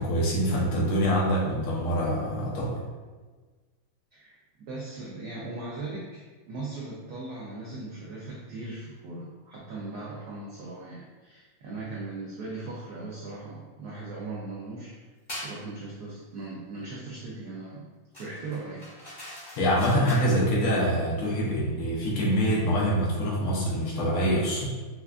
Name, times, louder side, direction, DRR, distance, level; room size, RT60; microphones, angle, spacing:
voice 1, 0.0-2.8 19.6-24.6, equal, 85° left, -4 dB, 1.7 m, -25 dB
voice 2, 4.7-15.0 15.4-17.9 18.2-18.8, right 3 dB, 85° right, -5 dB, 0.8 m, -39 dB
sound 1, 15.3-15.6 18.1-20.4, equal, 25° left, 1.0 m, -42 dB
4.6 x 2.3 x 2.4 m, 1.3 s
omnidirectional pair, 2.3 m